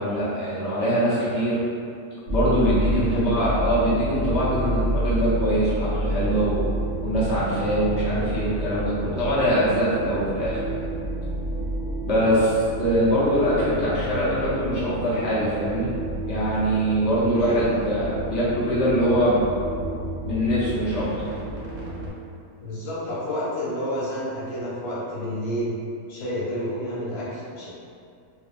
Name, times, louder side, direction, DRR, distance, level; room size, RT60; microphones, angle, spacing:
voice 1, 0.0-1.6 2.3-6.6 7.0-10.8 12.0-12.5 12.8-15.9 16.3-19.4 20.2-21.1, equal, 60° left, -10 dB, 0.8 m, -23 dB
sound 1, 2.3-22.1, right 1 dB, 55° right, 0.6 m, -30 dB
voice 2, 2.9-3.4 4.6-4.9 12.3-12.4 17.2-17.6 22.6-25.8 26.1-27.7, equal, 85° left, -8 dB, 1.3 m, -30 dB
2.6 x 2.2 x 2.4 m, 2.4 s
omnidirectional pair, 1.6 m